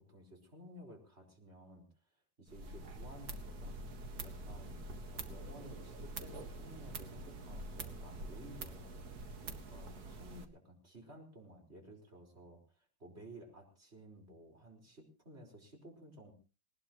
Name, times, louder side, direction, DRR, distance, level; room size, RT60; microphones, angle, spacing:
voice 1, 0.0-1.9 2.4-3.8 4.2-8.9 9.4-16.3, equal, 35° right, 2 dB, 5.2 m, -55 dB
sound 1, 2.5-10.5, right 2 dB, 55° right, 2.1 m, -46 dB
20.5 x 19.5 x 3.1 m, 0.35 s
omnidirectional pair, 2.0 m